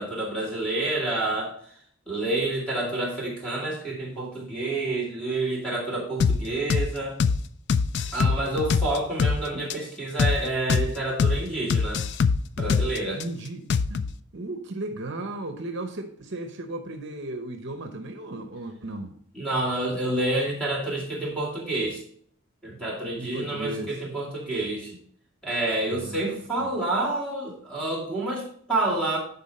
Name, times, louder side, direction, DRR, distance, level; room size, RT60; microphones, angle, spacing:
voice 1, 0.0-1.7 2.1-7.2 8.1-12.0 12.6-13.2 19.3-22.0 22.6-25.0 25.4-29.2, right 2 dB, 5° left, -4 dB, 2.2 m, -28 dB
sound 1, 6.2-6.4 6.7-6.9 7.2-7.4 7.7-9.4 9.7-9.8 10.2-10.4 10.7-10.9 11.2-11.4 11.7-13.2 13.7-14.1, left 5 dB, 50° left, 0.3 m, -22 dB
voice 2, 13.1-14.0 14.3-19.1 23.1-24.0 25.9-26.7, right 2 dB, 55° right, 5 dB, 0.8 m, -35 dB
10.5 x 4.1 x 4.3 m, 0.63 s
head